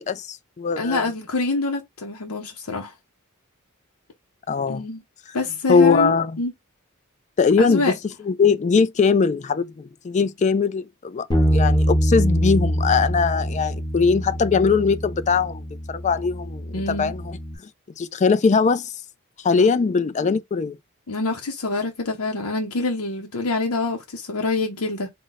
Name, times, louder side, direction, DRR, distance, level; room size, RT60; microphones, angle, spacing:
voice 1, 0.1-1.0 4.5-4.8 5.7-6.4 7.4-8.0 8.2-15.6 15.9-17.4 18.0-18.9 19.4-20.8, left 5 dB, 35° left, 0.4 m, -20 dB
voice 2, 0.8-2.9 4.7-5.0 5.3-6.5 7.6-7.9 16.7-17.2 19.6-19.8 21.1-25.1, left 3 dB, 80° left, 0.7 m, -26 dB
Bass guitar, 11.3-17.6, equal, 15° left, 1.3 m, -24 dB
3.8 x 2.1 x 3.9 m
head